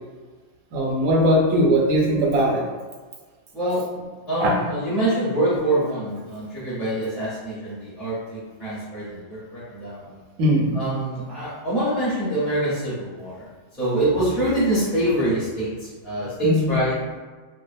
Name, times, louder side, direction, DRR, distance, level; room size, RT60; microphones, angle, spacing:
voice 1, 0.7-2.6 4.4-4.5 10.4-10.8 16.4-16.8, equal, 85° right, -2 dB, 1.0 m, -19 dB
voice 2, 4.3-10.2 10.7-13.5 13.8-16.9, right 1 dB, ahead, -10 dB, 0.6 m, -25 dB
2.4 x 2.2 x 2.5 m, 1.4 s
omnidirectional pair, 1.3 m